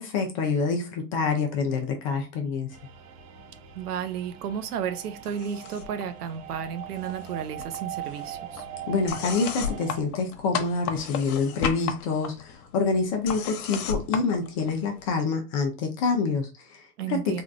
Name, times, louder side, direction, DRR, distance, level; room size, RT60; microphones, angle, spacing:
voice 1, 0.0-2.7 8.9-16.8 17.1-17.4, left 4 dB, 25° left, 0.4 m, -27 dB
sound 1, 2.7-10.0, right 10 dB, 40° right, 0.6 m, -41 dB
voice 2, 3.7-8.6 17.0-17.4, right 8 dB, 85° right, 0.8 m, -33 dB
sound 2, 5.2-6.0 6.3-7.3 7.6-15.1, left 7 dB, 85° left, 0.8 m, -35 dB
3.5 x 2.3 x 2.4 m
hypercardioid pair, 140°, 45 cm